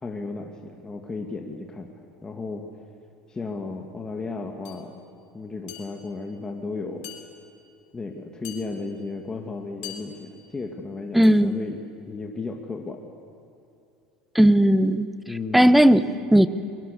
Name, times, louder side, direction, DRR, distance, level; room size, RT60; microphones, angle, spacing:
voice 1, 0.0-1.9 2.2-2.6 3.3-5.0 5.3-7.0 7.9-11.8 12.0-13.0 15.3-15.8, left 3 dB, 20° left, 2 dB, 2.3 m, -34 dB
sound 1, 4.6-4.9 5.7-6.2 7.0-7.7 8.4-9.1 9.8-10.5 11.2-11.6, left 11 dB, 75° left, 4.0 m, -44 dB
voice 2, 11.1-11.5 14.3-15.1 15.5-16.5, right 1 dB, 5° right, 14 dB, 1.0 m, -16 dB
23.0 x 23.0 x 6.8 m, 2.6 s
hypercardioid pair, 85°, 3 cm